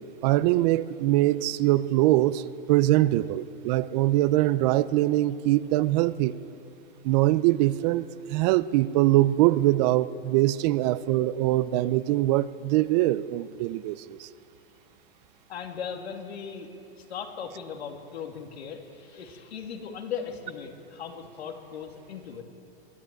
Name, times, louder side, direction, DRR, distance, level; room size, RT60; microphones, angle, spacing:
voice 1, 0.2-6.3 7.0-14.3, right 16 dB, 40° right, 16 dB, 0.6 m, -23 dB
voice 2, 15.5-16.7 17.0-22.4, left 7 dB, 85° left, 3 dB, 3.0 m, -38 dB
22.0 x 13.5 x 9.0 m, 2.5 s
hypercardioid pair, 140°, 31 cm